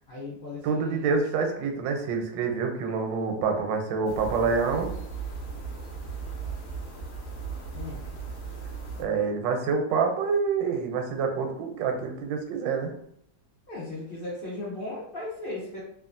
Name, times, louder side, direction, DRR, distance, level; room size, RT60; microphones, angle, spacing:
voice 1, 0.1-1.1 7.7-8.0 13.7-15.8, left 2 dB, 85° left, -7 dB, 0.4 m, -36 dB
voice 2, 0.6-4.9 9.0-12.9, right 5 dB, 85° right, 4 dB, 1.2 m, -27 dB
sound 1, 4.0-9.0, right 5 dB, 60° left, 0.8 m, -37 dB
2.9 x 2.3 x 2.5 m, 0.69 s
omnidirectional pair, 2.0 m